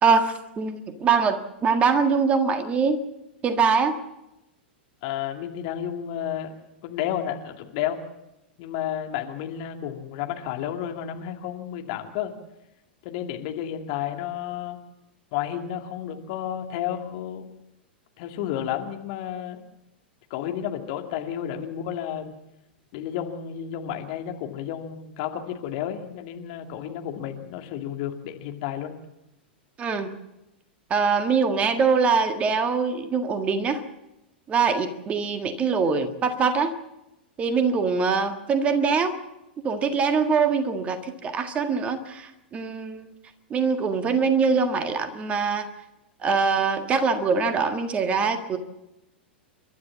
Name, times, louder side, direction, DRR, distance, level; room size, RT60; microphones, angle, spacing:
voice 1, 0.0-3.0 3.4-4.0 29.8-30.1 30.9-33.8 34.5-36.8 37.4-39.2 39.6-43.1 43.5-45.7 46.2-48.6, right 5 dB, 20° right, 8 dB, 1.7 m, -23 dB
voice 2, 5.0-6.5 6.8-8.0 8.6-12.3 13.0-14.8 15.3-17.4 18.2-19.6 20.3-22.3 22.9-28.9, left 10 dB, 45° left, 4 dB, 2.3 m, -31 dB
29.5 x 13.0 x 7.3 m, 0.91 s
figure-of-eight pair, 100°, 6 cm